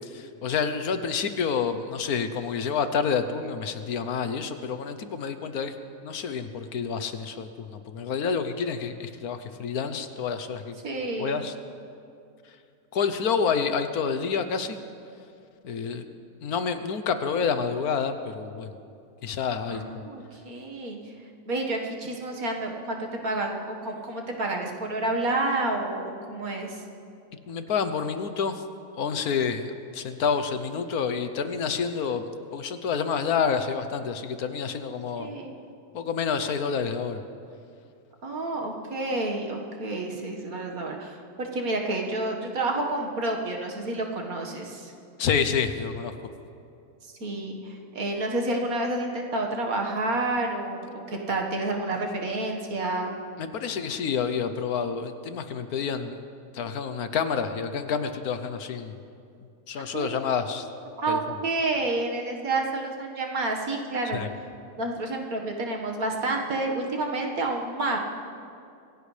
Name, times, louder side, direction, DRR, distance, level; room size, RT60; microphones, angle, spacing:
voice 1, 0.1-5.7 6.0-10.7 11.2-11.5 12.9-14.8 15.6-16.0 16.4-18.7 19.2-20.1 27.5-28.6 29.0-29.7 29.9-35.3 35.9-37.2 45.2-46.1 53.4-56.2 56.5-58.9 59.7-60.7 61.1-61.2 64.1-64.3, left 6 dB, 75° left, 9 dB, 1.4 m, -28 dB
voice 2, 10.8-11.4 19.7-21.0 21.5-26.8 35.2-35.5 38.2-44.9 47.0-53.1 59.9-60.2 61.0-64.3 64.8-68.0, right 2 dB, 65° right, 0 dB, 2.1 m, -29 dB
26.0 x 16.5 x 3.3 m, 2.5 s
omnidirectional pair, 1.6 m